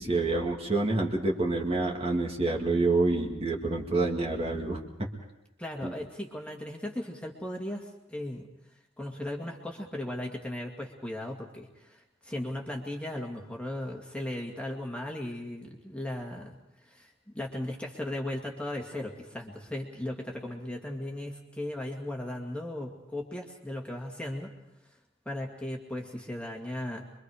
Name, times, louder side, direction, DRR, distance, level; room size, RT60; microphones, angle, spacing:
voice 1, 0.0-5.1 5.8-5.9, right 2 dB, 30° right, -1 dB, 2.3 m, -27 dB
voice 2, 5.6-8.5 9.0-24.5 24.9-25.0 25.3-27.1, left 1 dB, 5° left, 0 dB, 2.2 m, -37 dB
25.5 x 23.5 x 5.0 m, 0.87 s
head